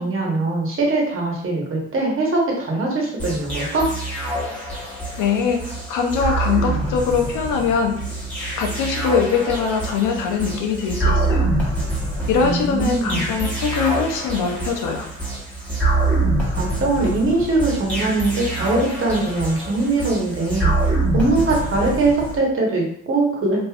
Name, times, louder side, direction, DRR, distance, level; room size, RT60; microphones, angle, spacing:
voice 1, 0.0-3.9 12.4-13.3 16.5-20.7 21.1-23.6, right 2 dB, 45° right, -2 dB, 1.1 m, -21 dB
sound 1, 3.2-22.4, right 2 dB, 5° left, 1.0 m, -25 dB
voice 2, 5.2-8.1 8.6-11.5 12.3-15.1, left 5 dB, 85° left, 2 dB, 0.6 m, -22 dB
3.1 x 2.5 x 2.3 m, 0.65 s
cardioid pair, 90°, 30 cm